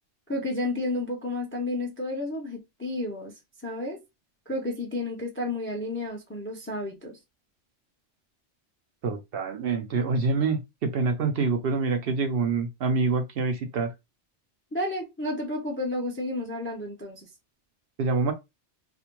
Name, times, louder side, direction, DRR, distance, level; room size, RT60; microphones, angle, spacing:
voice 1, 0.3-3.3 3.6-4.0 4.5-7.2 14.7-17.3, left 2 dB, 20° left, 0.4 m, -31 dB
voice 2, 9.0-13.9 18.0-18.3, right 4 dB, 65° right, 0.7 m, -26 dB
2.5 x 2.1 x 2.9 m
omnidirectional pair, 1.2 m